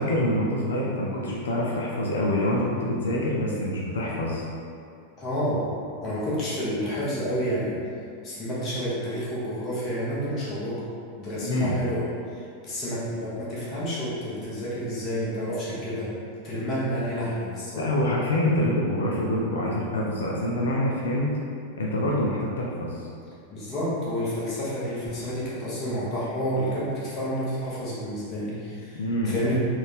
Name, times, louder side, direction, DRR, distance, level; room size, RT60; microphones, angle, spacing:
voice 1, 0.0-4.5 11.4-11.8 17.7-21.3 21.8-23.0 28.9-29.4, left 1 dB, 65° left, -3 dB, 0.5 m, -26 dB
voice 2, 5.2-5.6 6.0-7.7 8.2-10.8 11.2-12.0 12.3-16.1 16.4-17.8 23.5-29.5, equal, 30° left, -8 dB, 1.3 m, -29 dB
3.9 x 2.4 x 3.5 m, 2.4 s
figure-of-eight pair, 90°, 0 cm